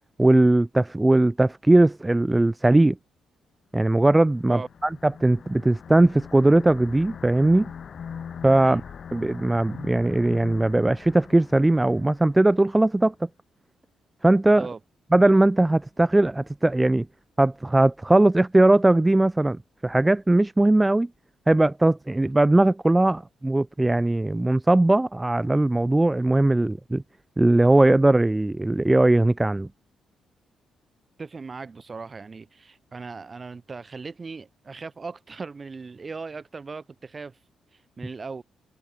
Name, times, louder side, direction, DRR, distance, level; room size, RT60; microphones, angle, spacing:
voice 1, 0.2-3.0 3.7-7.7 8.4-8.8 9.1-13.1 14.2-14.7 15.1-17.1 17.4-21.1 21.5-27.0 27.4-29.7, right 2 dB, 10° right, 0.3 m, -19 dB
sound 1, 4.3-12.8, left 7 dB, 50° left, 2.2 m, -42 dB
voice 2, 31.2-37.4 37.7-38.4, right 4 dB, 30° right, 2.0 m, -38 dB
cardioid pair, 105°, 0 cm